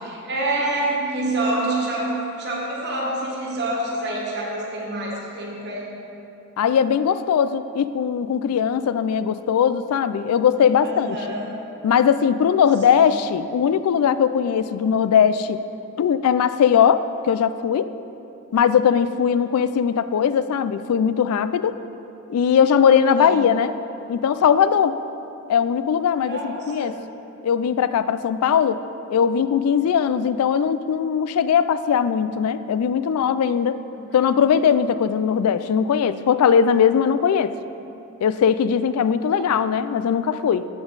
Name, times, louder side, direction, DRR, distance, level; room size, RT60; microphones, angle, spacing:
voice 1, 0.2-5.9 10.9-11.5 12.9-13.0 23.2-23.4 26.3-27.0 33.9-34.2 39.3-39.6, right 2 dB, 50° right, -4 dB, 1.4 m, -27 dB
voice 2, 6.6-11.2 11.8-15.6 16.0-17.9 18.5-21.8 22.3-23.8 24.1-25.0 25.5-27.0 27.4-28.8 29.1-33.8 34.1-37.5 38.2-40.7, left 7 dB, 85° left, 14 dB, 0.3 m, -20 dB
8.0 x 7.0 x 4.0 m, 2.8 s
head